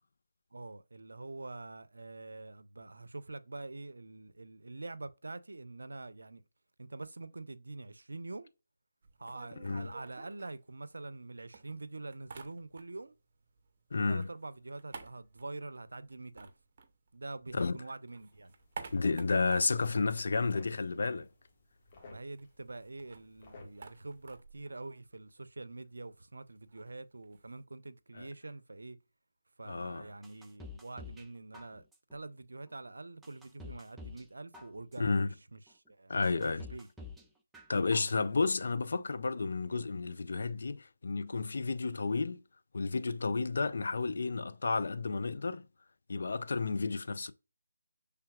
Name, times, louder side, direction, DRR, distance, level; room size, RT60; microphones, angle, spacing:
voice 1, 0.5-6.4 6.8-8.5 9.2-13.1 14.1-16.5 17.1-18.5 22.0-29.0 29.6-31.8 32.1-36.9, right 2 dB, 80° right, 0.5 m, -45 dB
sound 1, 9.0-11.2 11.5-13.2 13.4-17.6 17.9-21.2 21.5-21.6 21.8-27.6, right 4 dB, 40° right, 0.7 m, -52 dB
voice 2, 13.9-14.3 17.5-17.8 18.9-21.3 28.1-28.3 29.6-30.1 35.0-35.3 36.1-36.7 37.7-42.4 42.7-45.7 46.1-47.3, left 4 dB, 60° left, 0.4 m, -32 dB
sound 2, 18.3-24.3, left 2 dB, 35° left, 1.5 m, -56 dB
sound 3, 30.2-31.3 31.5-32.2 32.7-32.8 33.2-34.3 34.5-35.2 35.7-35.8 36.2-37.2 37.5-38.2 38.5-38.6, left 3 dB, 5° right, 0.4 m, -48 dB
5.6 x 3.4 x 2.3 m
figure-of-eight pair, 155°, 0 cm